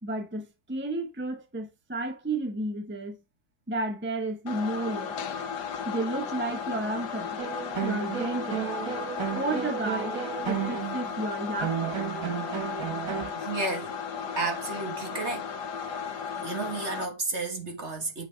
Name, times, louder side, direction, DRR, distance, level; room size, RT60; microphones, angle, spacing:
voice 1, 0.0-3.2 3.7-5.2 5.8-7.4 7.8-8.7 9.3-10.2 10.5-12.0, right 2 dB, 10° right, 1.1 m, -32 dB
sound 1, 4.5-17.1, left 7 dB, 75° left, 1.6 m, -35 dB
sound 2, 7.4-13.3, right 10 dB, 60° right, 1.7 m, -33 dB
voice 2, 13.4-13.9 14.4-15.5 16.4-18.3, right 3 dB, 40° right, 1.9 m, -32 dB
8.0 x 5.9 x 3.4 m
omnidirectional pair, 1.8 m